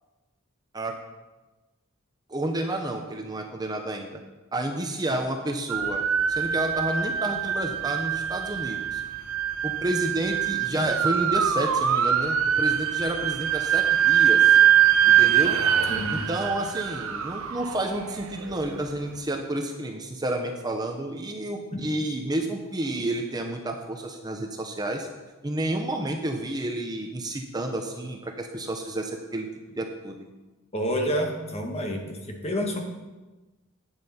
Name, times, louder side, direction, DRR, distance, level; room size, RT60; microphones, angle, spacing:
voice 1, 2.3-4.1 4.5-6.0 6.3-9.0 9.6-14.6 15.1-15.6 16.1-25.1 25.4-30.2, right 1 dB, 20° right, 3 dB, 0.7 m, -30 dB
sound 1, 5.7-18.8, right 9 dB, 80° right, 0.7 m, -23 dB
voice 2, 15.9-16.3 21.7-21.8 30.7-32.8, equal, 30° left, 2 dB, 1.4 m, -29 dB
10.0 x 9.0 x 4.3 m, 1.2 s
head